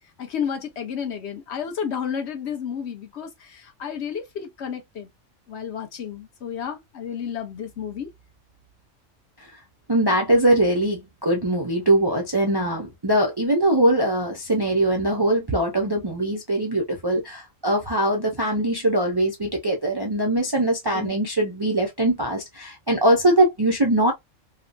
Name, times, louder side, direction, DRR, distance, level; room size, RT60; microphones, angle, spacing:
voice 1, 0.2-5.1 5.5-8.1 20.9-21.1, left 7 dB, 65° left, 1.0 m, -31 dB
voice 2, 9.9-24.1, right 1 dB, 40° right, 0.3 m, -22 dB
3.0 x 2.1 x 2.5 m
omnidirectional pair, 1.3 m